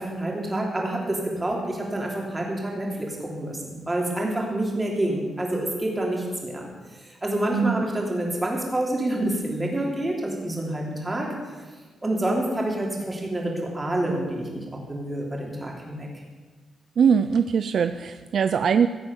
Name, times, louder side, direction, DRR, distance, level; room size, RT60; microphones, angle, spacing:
voice 1, 0.0-6.6 6.9-11.6 12.0-16.1, right 1 dB, 15° right, -1 dB, 3.1 m, -28 dB
voice 2, 7.5-7.8 17.0-18.9, right 7 dB, 55° right, 11 dB, 0.4 m, -21 dB
16.0 x 8.3 x 7.1 m, 1.3 s
wide cardioid pair, 140°, 0 cm